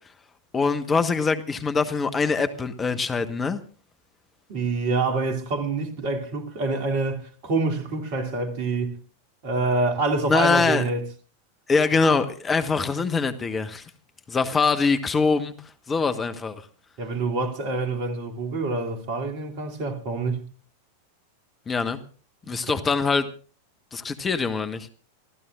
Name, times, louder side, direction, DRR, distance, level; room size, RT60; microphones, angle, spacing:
voice 1, 0.5-3.6 10.3-10.8 11.7-13.9 14.3-15.5 15.9-16.6 21.7-22.0 22.5-23.3 23.9-24.9, left 4 dB, 20° left, 1.2 m, -23 dB
voice 2, 4.5-9.0 9.4-11.1 17.0-20.5 22.4-22.7, right 3 dB, 45° right, 2.7 m, -26 dB
28.0 x 14.0 x 2.5 m
figure-of-eight pair, 90°, 0 cm